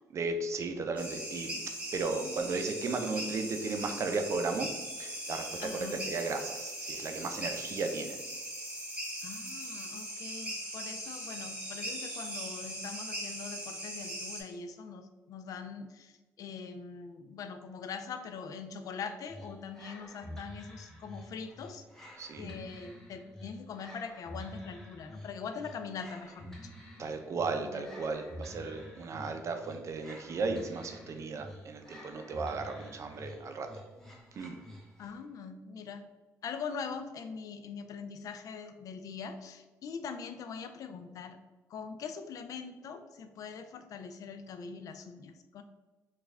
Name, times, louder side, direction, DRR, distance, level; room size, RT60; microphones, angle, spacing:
voice 1, 0.1-1.5 1.9-4.7 5.0-8.2 22.2-22.5 27.0-33.7 34.4-34.6, right 4 dB, 50° right, 6 dB, 0.5 m, -35 dB
sound 1, 1.0-14.4, equal, 20° right, 1.1 m, -40 dB
voice 2, 5.6-6.0 9.2-21.8 22.4-26.7 27.6-27.9 35.0-36.1 36.4-41.4 41.7-45.6, left 5 dB, 65° left, 8 dB, 0.3 m, -42 dB
sound 2, 19.3-35.2, left 1 dB, 5° left, 0.9 m, -49 dB
3.1 x 2.3 x 3.4 m, 1.2 s
cardioid pair, 80°, 6 cm